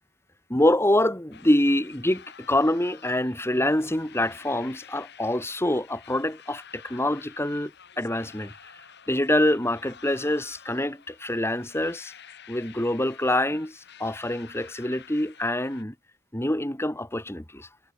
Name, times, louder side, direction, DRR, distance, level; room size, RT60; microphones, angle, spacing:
voice 1, 0.5-7.7 8.0-8.5 9.1-12.1 12.5-15.9 16.3-17.7, left 1 dB, 10° left, 2.3 m, -25 dB
sound 1, 1.3-15.8, left 8 dB, 55° left, 7.3 m, -50 dB
head